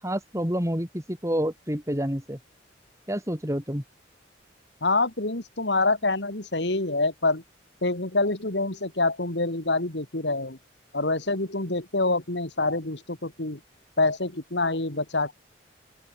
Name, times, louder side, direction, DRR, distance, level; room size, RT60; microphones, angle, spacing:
voice 1, 0.0-2.4 3.1-3.8, equal, 15° right, 7.3 m, -28 dB
voice 2, 4.8-7.4 7.8-10.6 10.9-13.6 14.0-15.3, left 2 dB, 65° left, 2.7 m, -26 dB
open air
head